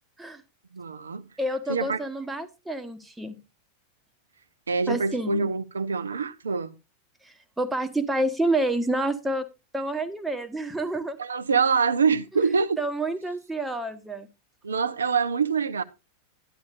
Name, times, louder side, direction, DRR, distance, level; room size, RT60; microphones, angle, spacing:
voice 1, 0.7-1.2 1.7-2.0 4.7-6.7 11.2-12.8 14.6-15.8, right 5 dB, 70° right, 0.6 m, -25 dB
voice 2, 1.4-3.3 4.9-5.5 7.2-9.4 9.7-11.2 12.8-14.3, right 1 dB, 5° right, 1.1 m, -28 dB
12.0 x 10.5 x 2.5 m
figure-of-eight pair, 90°, 0 cm